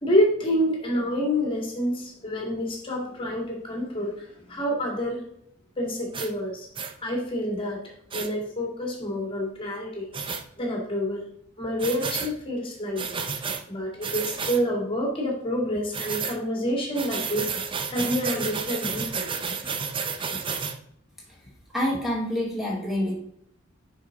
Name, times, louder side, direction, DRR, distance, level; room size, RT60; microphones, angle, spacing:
voice 1, 0.0-5.2 5.8-6.7 7.0-10.1 10.6-11.2 11.6-13.2 13.7-19.3, equal, 25° left, 0 dB, 2.0 m, -28 dB
sound 1, 6.1-6.3 6.7-6.9 8.1-8.3 10.1-10.4 11.8-12.3 13.0-13.6 14.0-14.6 15.9-16.4 16.9-20.7, right 5 dB, 25° right, 0.6 m, -31 dB
voice 2, 21.7-23.1, left 1 dB, ahead, -4 dB, 2.6 m, -27 dB
6.3 x 5.8 x 3.7 m, 0.70 s
head